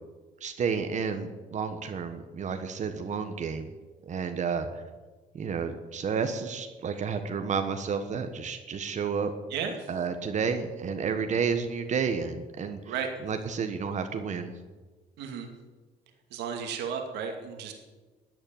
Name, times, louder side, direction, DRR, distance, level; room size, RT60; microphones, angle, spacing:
voice 1, 0.4-3.7 4.1-4.7 5.3-9.3 9.9-12.9 13.2-14.5, right 6 dB, 45° right, 7 dB, 1.4 m, -31 dB
voice 2, 9.5-9.9 12.9-13.1 15.2-15.5 16.3-17.7, right 7 dB, 80° right, 3 dB, 2.5 m, -33 dB
13.5 x 8.8 x 8.9 m, 1.3 s
cardioid pair, 110°, 17 cm